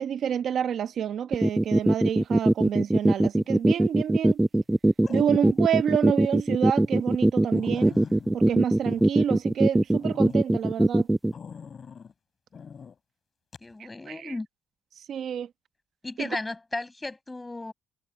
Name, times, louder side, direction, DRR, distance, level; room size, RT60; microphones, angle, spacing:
voice 1, 0.0-4.4 5.1-8.0 8.3-11.1 14.1-14.3 15.0-15.5 16.2-16.3, right 9 dB, 65° right, 1.1 m, -28 dB
sound 1, 1.3-11.3, right 1 dB, 10° right, 0.8 m, -21 dB
sound 2, 3.4-3.8 5.0-5.8 6.3-6.4 6.8-6.9 7.2-7.3 7.5-9.6 10.0-10.4 11.3-12.1 12.5-12.9 13.5-13.7, left 6 dB, 45° left, 3.7 m, -44 dB
voice 2, 13.6-14.5 16.0-17.7, left 2 dB, 15° left, 5.6 m, -35 dB
cardioid pair, 90°, 0 cm